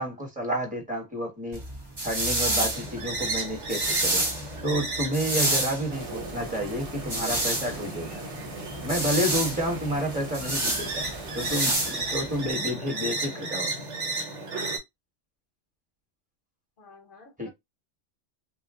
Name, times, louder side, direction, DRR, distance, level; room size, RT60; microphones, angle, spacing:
voice 1, 0.0-1.6 2.0-4.2 4.6-8.2 8.8-11.1 11.3-13.7 17.4-17.5, equal, 5° right, 1.0 m, -30 dB
sound 1, 1.5-12.5, right 1 dB, 25° right, 0.8 m, -29 dB
sound 2, 2.7-14.8, right 2 dB, 80° right, 1.2 m, -35 dB
sound 3, 5.9-11.8, right 1 dB, 50° right, 1.1 m, -40 dB
voice 2, 16.8-17.5, left 3 dB, 55° left, 0.8 m, -51 dB
2.4 x 2.2 x 3.5 m
omnidirectional pair, 1.2 m